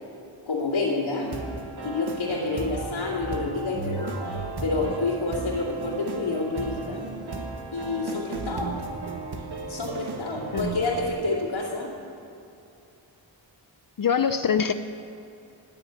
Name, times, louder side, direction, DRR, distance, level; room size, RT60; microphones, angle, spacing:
voice 1, 0.4-1.3 1.8-4.1 4.6-7.0 7.7-8.7 9.7-11.9, left 3 dB, 90° left, -6 dB, 2.4 m, -28 dB
sound 1, 1.2-11.1, right 3 dB, 55° right, 1.6 m, -35 dB
voice 2, 14.0-14.7, left 7 dB, 50° left, 10 dB, 0.5 m, -23 dB
18.0 x 7.0 x 9.1 m, 2.8 s
wide cardioid pair, 95°, 45 cm